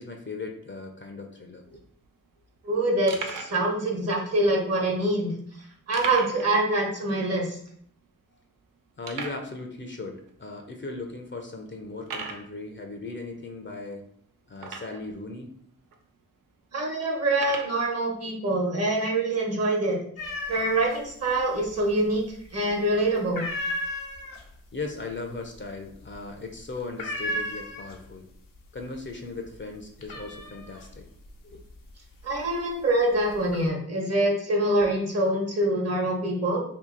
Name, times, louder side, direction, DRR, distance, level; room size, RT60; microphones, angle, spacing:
voice 1, 0.0-1.8 9.0-14.1 14.5-15.5 24.7-28.3 28.7-31.1 31.4-31.6, left 3 dB, 35° left, 4 dB, 0.6 m, -38 dB
sound 1, 1.6-1.7 1.9-2.0 2.6-2.7 3.1-3.6 4.4-4.5 5.9-6.5 6.8-6.9 7.3-7.4 8.0-8.1 9.0-9.5 10.3-10.4 11.0-11.1 12.0-12.5 14.6-15.1 15.9-16.0 17.3-17.8, right 4 dB, 85° right, 0.6 m, -36 dB
voice 2, 2.6-5.3 5.9-7.6 16.7-20.0 20.5-22.2 22.5-23.5 32.2-36.6, right 1 dB, 50° right, 0 dB, 1.1 m, -25 dB
sound 2, 20.2-21.0 21.3-22.1 22.4-22.8 23.1-28.2 28.6-29.1 29.4-32.6 33.1-33.7, left 1 dB, 80° left, 0.7 m, -35 dB
2.8 x 2.7 x 3.8 m, 0.64 s
cardioid pair, 65°, 33 cm